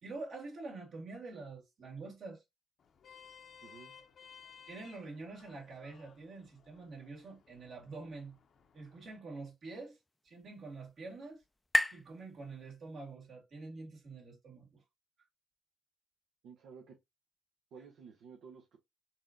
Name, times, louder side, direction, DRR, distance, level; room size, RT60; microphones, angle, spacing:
voice 1, 0.0-2.4 4.7-8.4 8.7-10.0 10.2-11.4 11.9-14.8, right 3 dB, 60° right, 1.9 m, -46 dB
Vehicle horn car horn honking, 2.8-9.2, left 7 dB, 55° left, 0.6 m, -58 dB
voice 2, 3.6-3.9 16.4-17.0 17.7-18.8, right 6 dB, 80° right, 0.7 m, -53 dB
sound 1, 9.4-13.2, left 1 dB, 15° left, 0.3 m, -38 dB
4.1 x 3.7 x 2.5 m
cardioid pair, 90°, 0 cm